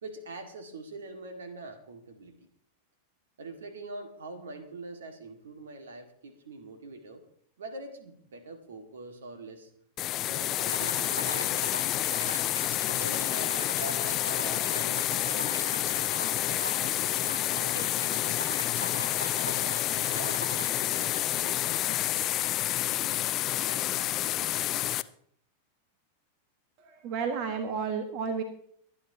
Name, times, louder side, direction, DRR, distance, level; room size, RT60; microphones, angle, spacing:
voice 1, 0.0-2.4 3.4-7.3 7.6-9.7 10.2-11.7 12.9-17.3 17.6-18.4 19.4-22.4 22.7-23.2 23.6-24.5, right 2 dB, 65° right, 7 dB, 2.1 m, -44 dB
sound 1, 10.0-25.0, left 14 dB, 35° left, 0.5 m, -29 dB
sound 2, 10.7-21.2, left 1 dB, 90° right, 1.4 m, -41 dB
voice 2, 26.8-28.4, right 5 dB, 40° right, 7 dB, 1.5 m, -32 dB
23.5 x 9.8 x 2.9 m, 0.64 s
figure-of-eight pair, 90°, 0 cm